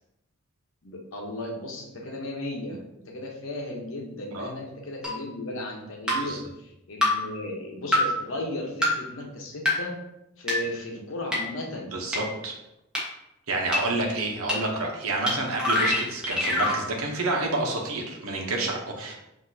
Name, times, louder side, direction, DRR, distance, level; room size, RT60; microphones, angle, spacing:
voice 1, 0.8-9.9 10.4-11.9, left 1 dB, 70° left, 0 dB, 1.0 m, -35 dB
sound 1, 5.0-5.1 6.1-6.2 7.0-7.1 7.9-8.0 8.8-8.9 9.6-9.7 10.5-10.6 11.3-11.4 12.1-12.2 12.9-13.0 13.7-13.8 14.5-14.6 15.3-15.4 15.6-16.8, left 1 dB, 5° right, 1.3 m, -23 dB
voice 2, 11.9-12.5 13.5-19.1, right 2 dB, 85° right, 0 dB, 0.9 m, -29 dB
6.0 x 2.8 x 2.8 m, 0.87 s
head